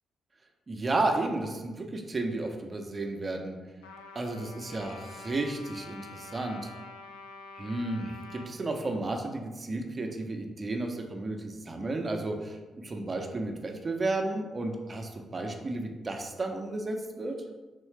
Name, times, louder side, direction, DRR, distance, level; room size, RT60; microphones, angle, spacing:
voice 1, 0.7-3.6 4.1-6.7 7.5-17.4, right 2 dB, 40° right, 3 dB, 0.6 m, -33 dB
Trumpet, 3.8-8.5, left 3 dB, 85° left, 0.3 m, -47 dB
3.7 x 3.1 x 3.3 m, 1.2 s
hypercardioid pair, 40°, 0 cm